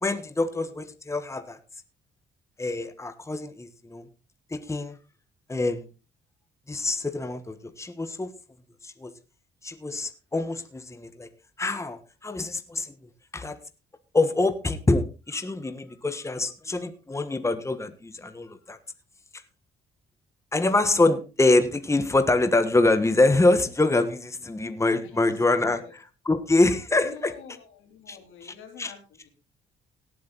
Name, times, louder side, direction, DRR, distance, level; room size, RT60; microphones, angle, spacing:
voice 1, 0.0-1.6 2.6-4.0 4.5-5.0 5.5-5.9 6.7-8.3 8.8-9.1 9.6-11.3 11.6-12.9 13.3-13.6 14.1-18.8 20.5-27.3 28.1-28.9, left 2 dB, 15° left, 10 dB, 1.4 m, -25 dB
voice 2, 25.0-25.9 27.0-29.0 29.2-29.3, left 7 dB, 85° left, 5 dB, 3.7 m, -47 dB
17.5 x 8.6 x 4.1 m, 0.31 s
cardioid pair, 90°, 20 cm